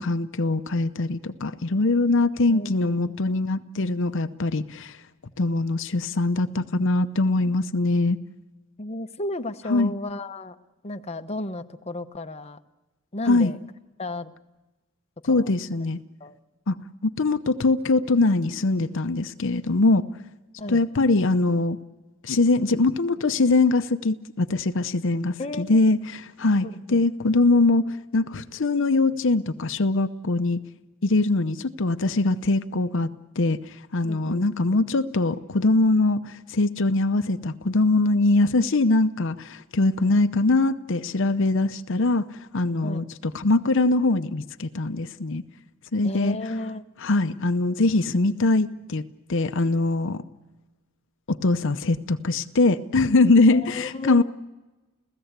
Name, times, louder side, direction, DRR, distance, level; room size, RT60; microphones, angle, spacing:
voice 1, 0.0-5.0 5.4-8.2 9.7-9.9 13.3-13.5 15.3-16.0 16.7-16.8 17.0-20.0 20.7-21.8 22.2-30.6 31.0-33.1 33.4-33.6 33.9-42.2 42.5-45.4 45.9-46.4 47.0-49.0 49.3-50.2 51.3-54.2, left 2 dB, 60° left, 11 dB, 0.8 m, -22 dB
voice 2, 2.5-3.2 8.8-10.6 10.8-12.6 13.1-13.6 14.0-14.3 15.3-15.5 16.2-16.4 20.6-20.8 25.4-25.8 26.6-27.0 34.0-34.8 42.8-43.1 46.0-46.9 53.5-54.2, left 1 dB, 30° left, 8 dB, 0.9 m, -33 dB
30.0 x 16.0 x 8.1 m, 1.1 s
head